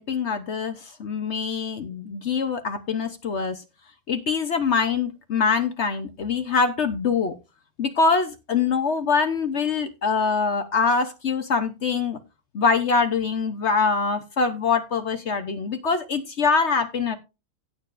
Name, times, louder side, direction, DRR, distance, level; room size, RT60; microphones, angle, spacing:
voice 1, 0.0-3.6 4.1-7.3 7.8-12.2 12.5-17.2, left 5 dB, 55° left, 8 dB, 0.7 m, -24 dB
17.0 x 6.6 x 2.5 m, 0.28 s
omnidirectional pair, 2.1 m